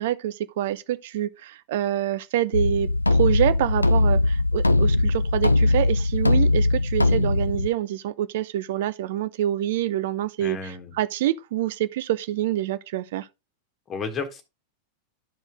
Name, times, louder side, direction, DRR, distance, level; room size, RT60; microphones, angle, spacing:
voice 1, 0.0-13.3, right 13 dB, 55° right, 0.6 m, -26 dB
sound 1, 2.5-7.7, left 2 dB, 85° left, 0.4 m, -20 dB
voice 2, 10.4-11.0 13.9-14.4, left 4 dB, 25° left, 1.5 m, -32 dB
12.0 x 4.5 x 3.5 m
figure-of-eight pair, 90°, 0 cm